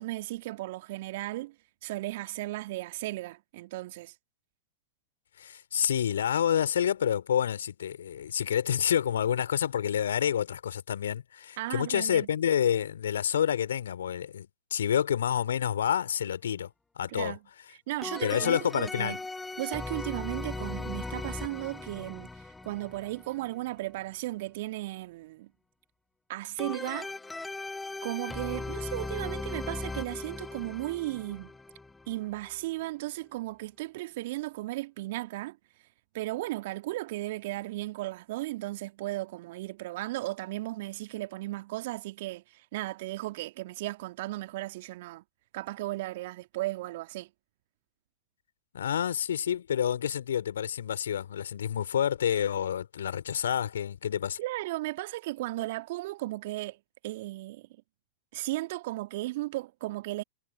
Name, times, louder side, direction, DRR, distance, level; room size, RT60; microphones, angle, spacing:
voice 1, 0.0-1.5 1.8-4.1 11.6-12.3 17.1-17.4 17.9-19.2 19.6-22.3 22.6-25.5 26.3-27.1 28.0-31.5 32.1-35.6 36.1-45.2 45.5-47.3 54.4-56.8 57.0-57.7 58.3-60.2, right 18 dB, 55° right, 1.9 m, -35 dB
voice 2, 5.4-16.7 17.0-17.3 18.2-19.2 48.7-54.4, left 9 dB, 70° left, 3.1 m, -28 dB
sound 1, 18.0-23.6 26.6-32.7, left 3 dB, 10° left, 1.2 m, -38 dB
figure-of-eight pair, 95°, 0 cm